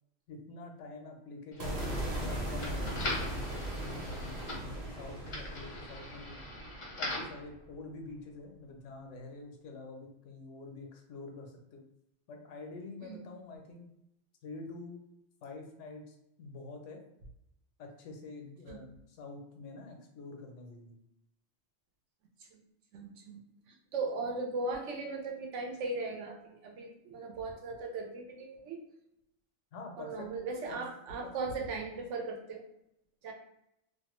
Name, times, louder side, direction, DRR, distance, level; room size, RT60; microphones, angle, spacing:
voice 1, 0.3-1.9 2.2-6.4 6.9-11.8 12.3-13.9 14.4-15.0 15.4-17.0 17.8-21.0 29.7-30.3 30.7-30.8, left 3 dB, 85° left, 3 dB, 0.9 m, -47 dB
sound 1, 1.5-7.4, left 1 dB, 55° left, 0.3 m, -41 dB
sound 2, 1.6-7.8, right 1 dB, 55° right, 0.9 m, -38 dB
voice 2, 22.9-23.4 23.7-28.8 30.0-32.6 33.2-33.3, right 3 dB, 80° right, 2 dB, 0.9 m, -38 dB
2.4 x 2.0 x 3.0 m, 0.82 s
omnidirectional pair, 1.2 m